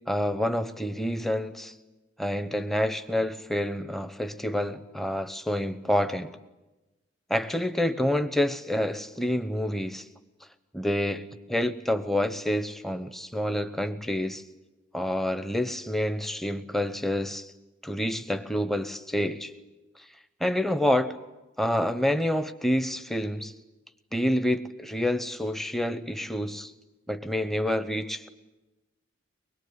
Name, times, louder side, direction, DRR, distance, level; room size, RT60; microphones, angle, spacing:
voice 1, 0.1-1.7 2.2-6.3 7.3-10.1 10.7-14.4 14.9-17.5 17.8-19.5 20.0-20.1 20.4-21.2 21.6-23.5 24.1-26.7 27.1-28.3, left 1 dB, ahead, 0.9 m, -28 dB
24.0 x 21.5 x 9.8 m
head